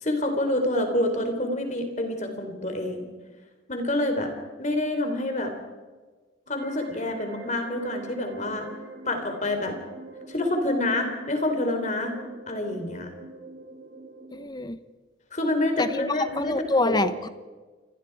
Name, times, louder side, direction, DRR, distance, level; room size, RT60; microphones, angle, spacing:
voice 1, 0.0-3.1 3.7-4.3 4.6-5.5 6.5-8.7 9.1-9.8 10.3-12.2 12.5-13.1 15.3-16.5 16.8-17.1, left 1 dB, 40° left, 5 dB, 3.9 m, -27 dB
sound 1, 6.5-14.5, right 2 dB, 50° right, 6.7 m, -45 dB
voice 2, 14.3-14.8 15.8-17.3, left 2 dB, 20° left, 12 dB, 1.0 m, -26 dB
29.0 x 21.0 x 4.9 m, 1.3 s
head